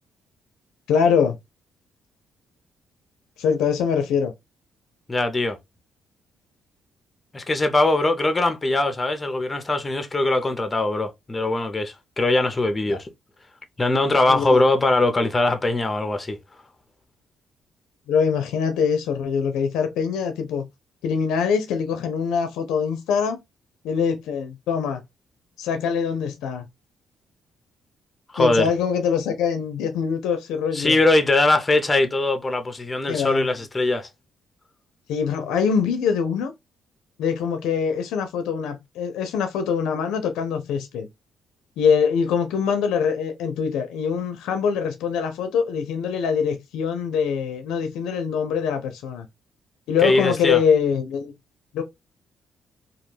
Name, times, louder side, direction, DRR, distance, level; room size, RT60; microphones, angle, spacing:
voice 1, 0.9-1.4 3.4-4.3 14.3-14.6 18.1-20.6 21.0-23.4 23.8-25.0 25.6-26.6 28.4-31.0 33.1-33.5 35.1-36.5 37.2-41.1 41.8-49.3 49.9-51.3 51.7-51.8, left 6 dB, 90° left, 0.4 m, -23 dB
voice 2, 5.1-5.6 7.3-13.1 13.8-16.4 28.3-28.7 30.7-34.1 50.0-50.6, left 2 dB, 20° left, 0.5 m, -21 dB
2.2 x 2.2 x 3.1 m
cardioid pair, 90°, 0 cm